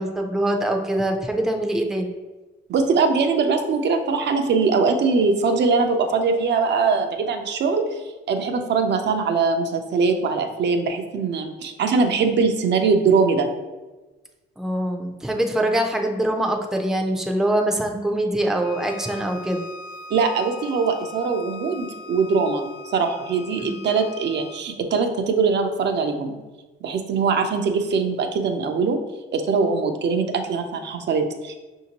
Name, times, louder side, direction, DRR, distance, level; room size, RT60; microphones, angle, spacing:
voice 1, 0.0-2.1 14.6-19.6 23.6-23.8, right 1 dB, ahead, 2 dB, 0.5 m, -24 dB
voice 2, 2.7-13.5 20.1-26.3 26.8-29.0 29.3-31.5, right 4 dB, 60° right, 5 dB, 0.6 m, -22 dB
Bowed string instrument, 18.6-24.7, left 3 dB, 80° left, 0.5 m, -41 dB
5.7 x 2.8 x 2.9 m, 1.2 s
cardioid pair, 90°, 20 cm